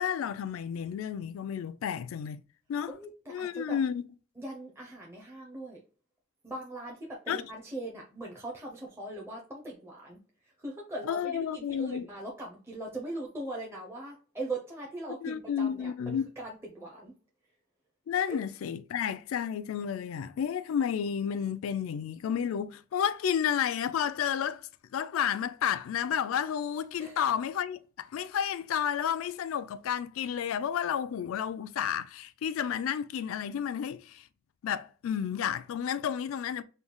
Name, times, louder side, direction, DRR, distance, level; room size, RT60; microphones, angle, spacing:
voice 1, 0.0-2.4 2.7-3.0 3.3-4.0 7.3-7.4 11.0-12.1 15.2-16.3 18.1-34.2 34.6-36.6, left 8 dB, 80° left, 0.3 m, -31 dB
voice 2, 2.9-3.8 4.4-5.8 6.4-10.2 10.6-17.1 27.0-27.2, right 2 dB, 15° right, 0.6 m, -40 dB
3.1 x 2.3 x 3.7 m
head